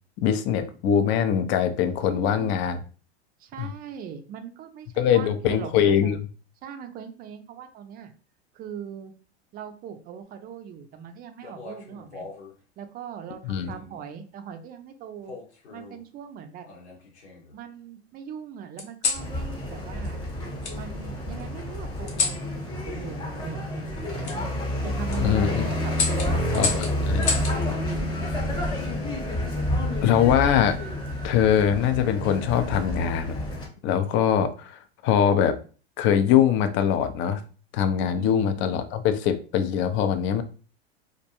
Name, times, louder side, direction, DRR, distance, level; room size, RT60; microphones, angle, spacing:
voice 1, 0.2-2.8 3.6-3.7 5.0-6.3 13.4-13.7 25.2-25.6 26.5-26.7 27.1-27.3 30.0-30.8 31.2-33.4 33.8-35.6 36.0-37.4 37.7-40.4, left 9 dB, 35° left, 0.4 m, -22 dB
voice 2, 1.8-2.5 3.4-6.2 6.6-8.1 8.5-9.1 9.5-12.3 12.8-15.4 15.7-16.7 17.5-20.2 20.7-22.5 22.8-24.2 24.8-26.6 27.0-28.2 38.1-38.8, right 7 dB, 30° right, 0.4 m, -40 dB
sound 1, 11.4-12.5 13.6-14.0 15.2-16.0 16.6-17.5 18.8-19.3 20.6-20.8 22.1-22.4 24.2-24.4 24.9-25.2 25.9-27.6 29.1-29.5, left 4 dB, 85° left, 0.9 m, -31 dB
sound 2, 19.1-33.7, left 1 dB, 15° left, 0.9 m, -29 dB
2.4 x 2.2 x 2.8 m
hypercardioid pair, 95°, 33 cm